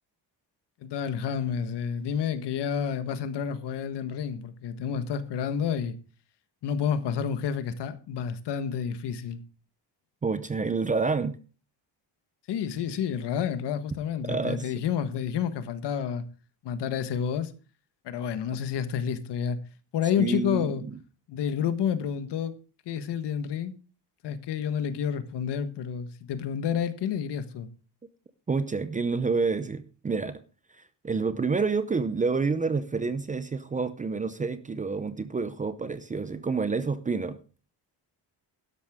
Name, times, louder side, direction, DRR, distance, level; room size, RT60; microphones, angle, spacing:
voice 1, 0.8-6.0 6.6-9.4 12.5-16.3 16.6-17.5 18.0-19.6 19.9-20.8 21.3-22.5 22.8-23.7 24.2-27.7, left 8 dB, 65° left, 1.4 m, -29 dB
voice 2, 10.2-11.4 14.2-14.6 20.2-21.0 28.5-30.4 30.7-37.4, right 4 dB, 20° right, 0.6 m, -28 dB
12.5 x 11.0 x 3.6 m
cardioid pair, 180°, 43 cm